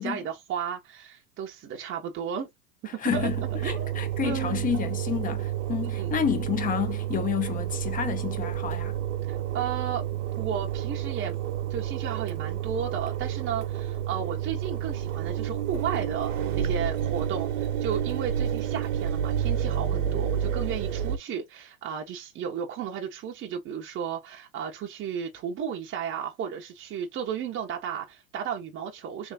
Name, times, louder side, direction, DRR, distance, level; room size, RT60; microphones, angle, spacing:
voice 1, 0.0-2.5 2.9-3.3 3.6-3.9 4.2-4.7 6.0-6.1 9.3-10.0 10.3-11.4 11.7-29.3, right 7 dB, 25° right, 0.8 m, -34 dB
voice 2, 2.9-8.9, left 8 dB, 20° left, 0.7 m, -30 dB
Engine, 3.1-21.2, right 10 dB, 60° right, 1.0 m, -30 dB
3.4 x 3.1 x 2.6 m
hypercardioid pair, 110°, 44 cm